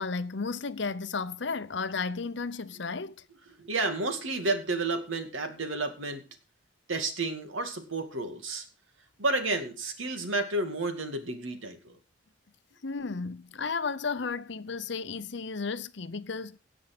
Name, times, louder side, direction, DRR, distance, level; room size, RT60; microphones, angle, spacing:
voice 1, 0.0-3.2 12.8-16.6, left 4 dB, 60° left, 0.8 m, -33 dB
voice 2, 3.5-6.2 6.9-8.7 9.2-12.0, right 2 dB, 75° right, 2.3 m, -31 dB
17.5 x 6.2 x 6.1 m
head